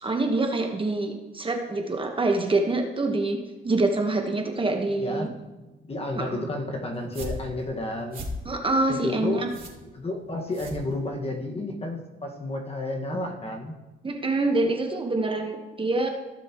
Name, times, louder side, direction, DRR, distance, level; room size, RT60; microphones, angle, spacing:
voice 1, 0.0-3.4 3.6-5.3 6.2-6.4 8.4-9.5 14.0-16.1, right 2 dB, 25° right, 3 dB, 1.3 m, -25 dB
voice 2, 4.9-8.2 8.9-9.4 9.9-13.7, left 2 dB, 30° left, 2 dB, 1.7 m, -31 dB
sound 1, 6.9-11.4, equal, 45° right, 2.6 m, -39 dB
16.0 x 7.1 x 3.1 m, 1.1 s
cardioid pair, 90°, 20 cm